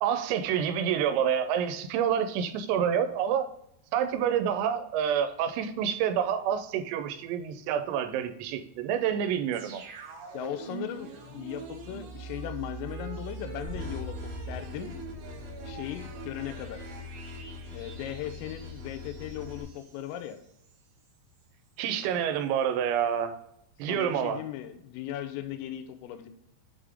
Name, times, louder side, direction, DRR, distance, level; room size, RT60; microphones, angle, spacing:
voice 1, 0.0-3.5 3.9-9.8 21.8-23.3 23.8-24.4, right 8 dB, 85° right, 9 dB, 3.3 m, -28 dB
sound 1, 9.5-20.3 20.6-20.7, right 5 dB, 65° right, 2.8 m, -43 dB
voice 2, 10.3-14.9 15.7-16.8 17.7-20.4 23.8-26.3, left 11 dB, 85° left, 8 dB, 3.2 m, -38 dB
sound 2, 13.6-19.6, left 3 dB, 50° right, 1.5 m, -42 dB
8.1 x 3.7 x 3.4 m, 0.78 s
omnidirectional pair, 6.0 m